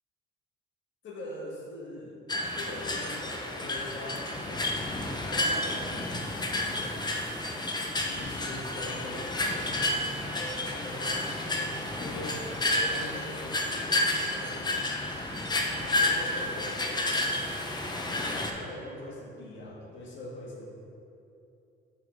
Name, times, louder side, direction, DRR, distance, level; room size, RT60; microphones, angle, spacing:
voice 1, 1.0-2.2 2.5-7.2 8.0-14.7 15.8-17.3 18.1-20.7, left 1 dB, 70° left, -3 dB, 1.7 m, -43 dB
sound 1, 2.3-18.5, left 1 dB, 20° left, 0.8 m, -31 dB
7.8 x 4.0 x 5.2 m, 2.7 s
cardioid pair, 90°, 20 cm